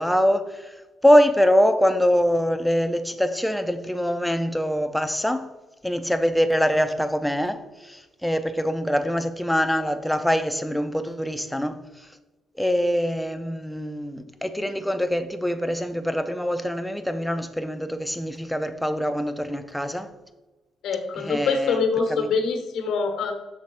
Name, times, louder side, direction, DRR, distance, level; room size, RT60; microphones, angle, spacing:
voice 1, 0.0-5.5 5.8-12.1 12.6-20.1 21.2-21.8 22.1-22.3, equal, 5° left, 0.6 m, -24 dB
voice 2, 20.8-23.3, left 4 dB, 80° left, 1.2 m, -24 dB
6.5 x 3.5 x 5.4 m
cardioid pair, 90°, 0 cm